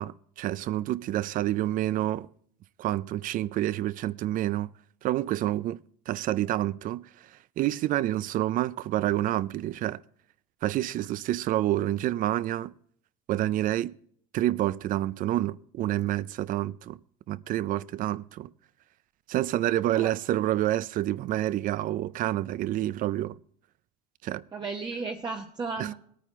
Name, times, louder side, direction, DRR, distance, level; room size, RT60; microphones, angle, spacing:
voice 1, 0.0-2.3 2.8-4.7 5.0-5.8 6.1-10.0 10.6-12.7 13.3-13.9 14.3-17.0 17.3-18.5 19.3-23.4 24.2-24.4 25.8-25.9, right 14 dB, 45° right, 0.4 m, -28 dB
voice 2, 24.5-25.9, right 4 dB, 25° right, 0.9 m, -34 dB
20.5 x 9.2 x 3.6 m
cardioid pair, 120°, 19 cm